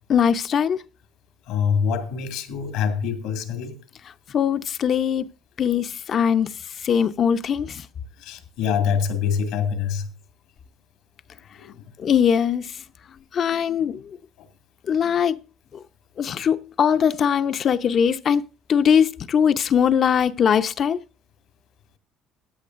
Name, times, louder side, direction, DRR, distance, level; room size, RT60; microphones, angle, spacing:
voice 1, 0.1-0.8 4.3-5.2 5.6-6.5 6.8-7.8 12.0-12.7 13.3-14.0 14.9-15.4 16.2-18.4 18.7-21.0, left 8 dB, 45° left, 0.7 m, -20 dB
voice 2, 1.5-3.8 8.2-10.1 11.5-11.8 14.4-14.5, left 7 dB, 80° left, 2.1 m, -25 dB
15.5 x 10.0 x 2.6 m
cardioid pair, 110°, 0 cm